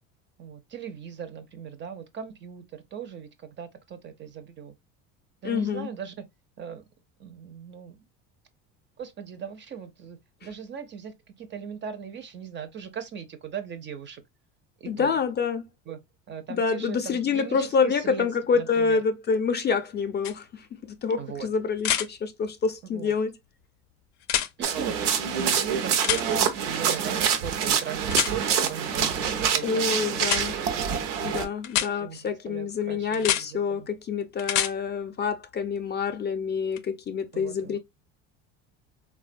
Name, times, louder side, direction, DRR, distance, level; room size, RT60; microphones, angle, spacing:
voice 1, 0.4-4.7 5.4-6.3 6.6-6.8 7.2-8.0 9.0-14.2 14.8-15.1 15.9-16.0 16.3-18.3 18.5-19.0 21.2-21.5 22.9-23.1 24.6-25.0 25.3-30.7 31.8-33.9 37.3-37.8, right 8 dB, 30° right, 0.4 m, -38 dB
voice 2, 5.4-5.9 14.9-15.7 16.5-23.3 29.6-30.6 31.2-37.8, left 5 dB, 30° left, 0.4 m, -27 dB
sound 1, 20.2-20.3 21.8-22.1 24.2-24.5 26.0-26.2 28.1-28.3 30.2-30.4 31.6-31.9 33.1-33.4 34.4-34.7 36.8-36.9, left 11 dB, 90° left, 0.5 m, -25 dB
sound 2, 24.6-31.4, right 7 dB, 90° right, 0.6 m, -26 dB
3.2 x 2.2 x 2.4 m
supercardioid pair, 95°, 35 cm